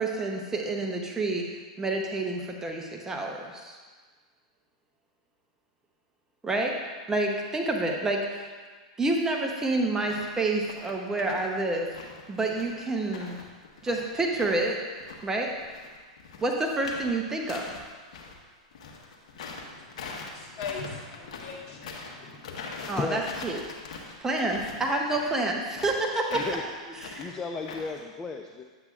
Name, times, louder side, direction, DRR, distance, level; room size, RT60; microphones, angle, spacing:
voice 1, 0.0-1.5 1.8-3.8 6.4-6.8 7.1-8.5 9.0-11.9 12.3-13.4 13.8-14.8 15.2-15.5 16.4-17.7 22.9-23.6 24.2-26.4 27.0-27.3, right 2 dB, 15° right, 1 dB, 0.8 m, -28 dB
sound 1, 10.0-10.3 10.6-11.5 11.8-14.6 15.0-18.3 18.7-28.0, left 4 dB, 70° left, 1.2 m, -42 dB
voice 2, 19.6-22.9, left 5 dB, 50° left, -4 dB, 2.2 m, -41 dB
voice 3, 22.5-23.5 26.3-26.6 27.2-28.6, left 4 dB, 20° left, 3 dB, 0.4 m, -35 dB
9.9 x 8.1 x 2.4 m, 1.5 s
hypercardioid pair, 120°, 4 cm